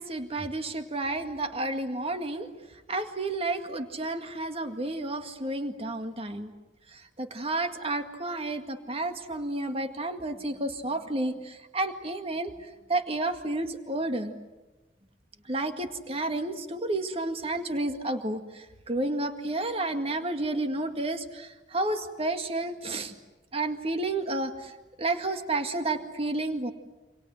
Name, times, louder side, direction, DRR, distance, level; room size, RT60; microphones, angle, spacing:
voice 1, 0.0-2.5 2.9-6.5 7.2-12.5 12.9-14.3 15.5-23.1 23.5-24.7 25.0-26.7, right 2 dB, 35° right, 7 dB, 2.0 m, -31 dB
28.5 x 26.5 x 7.8 m, 1.1 s
head